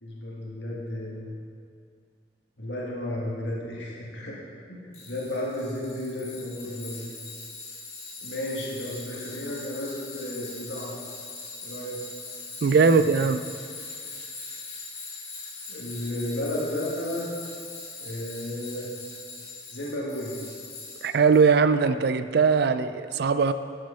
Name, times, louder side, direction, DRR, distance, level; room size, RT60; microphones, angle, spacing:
voice 1, 0.0-1.3 2.6-4.3 4.7-7.0 8.2-10.9 11.6-12.0 12.8-13.1 15.7-17.3 18.0-18.9 19.7-20.4, left 1 dB, 70° left, -4 dB, 1.7 m, -33 dB
Tools, 4.9-21.4, left 3 dB, 35° left, 2.3 m, -41 dB
voice 2, 12.6-13.4 21.0-23.5, right 5 dB, 60° right, 11 dB, 0.4 m, -20 dB
11.5 x 6.2 x 5.6 m, 2.2 s
head